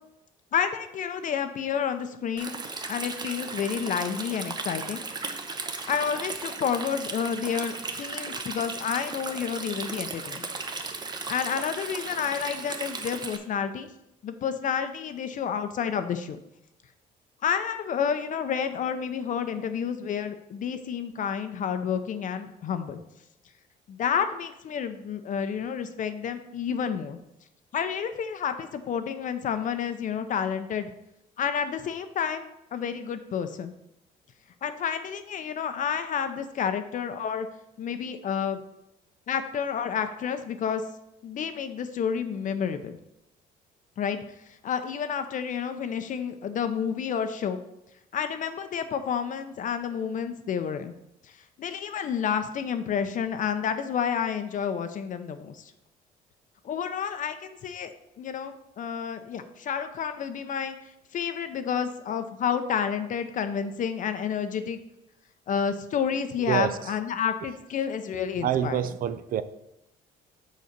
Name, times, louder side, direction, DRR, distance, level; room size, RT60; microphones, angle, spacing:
voice 1, 0.5-2.6 2.9-5.0 5.9-10.5 11.3-13.9 14.2-16.4 17.4-23.0 23.9-27.2 27.7-30.9 31.4-33.7 34.6-37.5 37.8-38.6 39.3-40.8 41.2-43.0 44.0-44.2 44.6-47.6 48.1-50.9 51.6-55.7 56.6-57.9 58.2-60.8 61.1-64.8 65.5-68.8, left 7 dB, 50° left, 9 dB, 0.7 m, -30 dB
Stream, 2.4-13.4, right 4 dB, 25° right, 0.8 m, -36 dB
voice 2, 66.5-66.9 68.4-69.4, right 10 dB, 55° right, 14 dB, 0.5 m, -27 dB
6.6 x 4.2 x 6.5 m, 0.84 s
cardioid pair, 110°, 17 cm